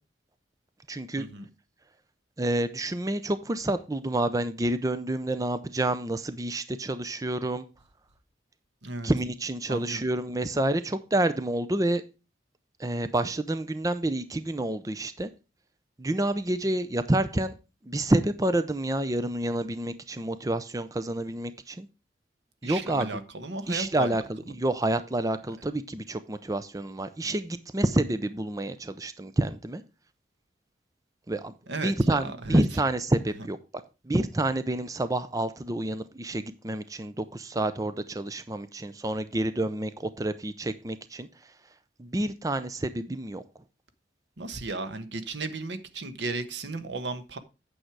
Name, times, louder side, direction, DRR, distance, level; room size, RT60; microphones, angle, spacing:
voice 1, 0.9-1.2 2.4-7.6 9.0-12.0 12.8-15.3 16.0-17.5 17.8-21.9 22.6-23.2 23.7-29.8 31.3-33.6 34.0-41.3 42.0-43.4, right 1 dB, 20° right, 0.5 m, -28 dB
voice 2, 9.7-10.0 22.6-24.2 31.7-32.6 44.4-47.4, right 3 dB, 85° right, 1.2 m, -35 dB
8.9 x 6.4 x 4.6 m
head